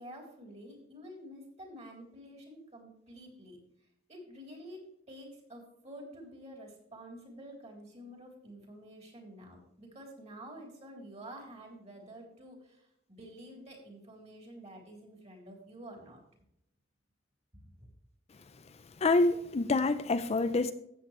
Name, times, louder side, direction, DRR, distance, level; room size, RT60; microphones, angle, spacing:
voice 1, 0.0-3.6 4.1-4.8 5.1-16.2 17.5-17.9, equal, 35° right, 3.6 m, -49 dB
voice 2, 19.0-20.7, left 3 dB, 35° left, 0.5 m, -26 dB
13.5 x 8.4 x 3.2 m
head